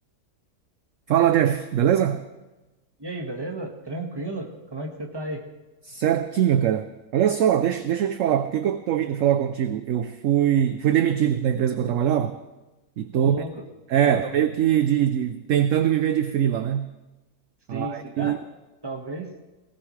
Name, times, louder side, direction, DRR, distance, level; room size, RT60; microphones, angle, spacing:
voice 1, 1.1-2.2 5.8-12.4 13.0-13.4 13.9-17.0 17.7-18.4, right 10 dB, 65° right, 10 dB, 0.9 m, -22 dB
voice 2, 3.0-5.4 13.1-13.6 14.0-14.2 17.7-18.4 18.8-19.3, right 2 dB, 15° right, 1 dB, 1.6 m, -33 dB
18.0 x 18.0 x 3.2 m, 1.1 s
omnidirectional pair, 1.7 m